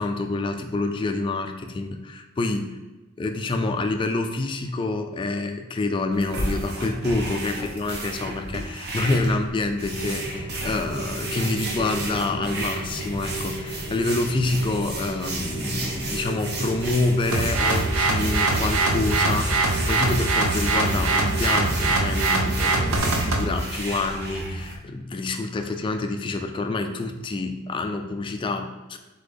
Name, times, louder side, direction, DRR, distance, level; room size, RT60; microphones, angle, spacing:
voice 1, 0.0-2.7 3.2-29.0, left 2 dB, 25° left, 5 dB, 0.3 m, -27 dB
sound 1, 6.1-24.7, right 1 dB, 50° right, 0.9 m, -33 dB
Rain, 9.8-23.0, right 2 dB, 5° right, 1.5 m, -34 dB
sound 2, 17.3-23.5, right 2 dB, 80° right, 0.6 m, -23 dB
4.0 x 3.9 x 3.4 m, 1.1 s
head